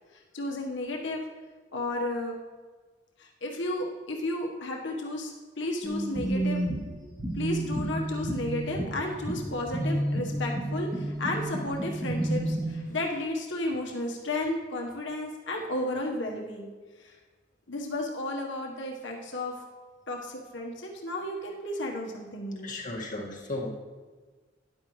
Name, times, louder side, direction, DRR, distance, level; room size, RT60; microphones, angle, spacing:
voice 1, 0.1-1.2 1.7-2.4 3.2-6.7 7.3-16.7 17.0-17.2 17.7-19.6 20.1-22.7, left 1 dB, 75° left, 0 dB, 1.3 m, -33 dB
sound 1, 5.8-12.7, right 1 dB, 20° right, 2.9 m, -31 dB
voice 2, 22.6-23.7, left 2 dB, 45° left, -2 dB, 1.9 m, -35 dB
12.5 x 10.5 x 3.2 m, 1.4 s
head